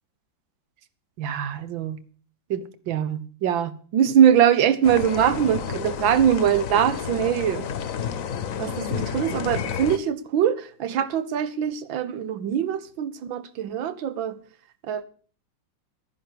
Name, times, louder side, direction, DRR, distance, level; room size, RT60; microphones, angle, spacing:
voice 1, 1.2-2.0 2.5-7.7 8.6-14.4 14.9-15.0, right 9 dB, 85° right, 1.8 m, -23 dB
sound 1, 4.8-10.0, left 8 dB, 55° left, 1.1 m, -31 dB
11.5 x 10.5 x 6.7 m
omnidirectional pair, 2.0 m